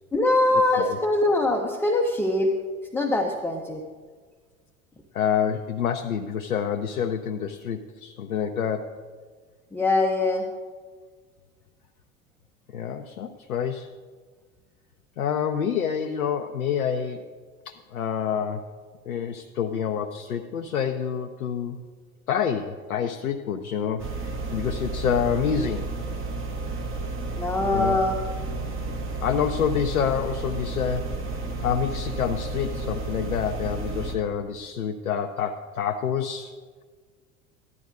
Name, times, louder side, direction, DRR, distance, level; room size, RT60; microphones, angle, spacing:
voice 1, 0.1-2.5 2.9-3.8 9.7-10.4 27.3-28.2, left 2 dB, 5° left, 1 dB, 0.6 m, -22 dB
voice 2, 5.1-9.0 12.7-13.9 15.2-17.2 17.7-18.7 19.1-21.8 22.3-25.9 27.7-28.0 29.2-36.5, left 8 dB, 85° left, 5 dB, 0.6 m, -27 dB
sound 1, 24.0-34.2, right 3 dB, 30° right, 1.3 m, -32 dB
14.0 x 10.5 x 2.6 m, 1.5 s
figure-of-eight pair, 75°, 42 cm